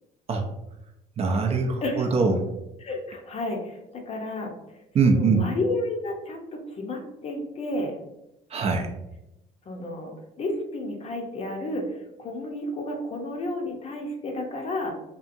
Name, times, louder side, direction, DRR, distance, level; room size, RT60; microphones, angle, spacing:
voice 1, 1.2-2.5 4.9-5.4 8.5-8.9, right 4 dB, 35° right, 3 dB, 0.4 m, -22 dB
voice 2, 2.8-4.5 5.0-8.0 9.7-14.9, left 1 dB, 40° left, 2 dB, 0.6 m, -31 dB
2.8 x 2.4 x 2.5 m, 0.89 s
cardioid pair, 110°, 17 cm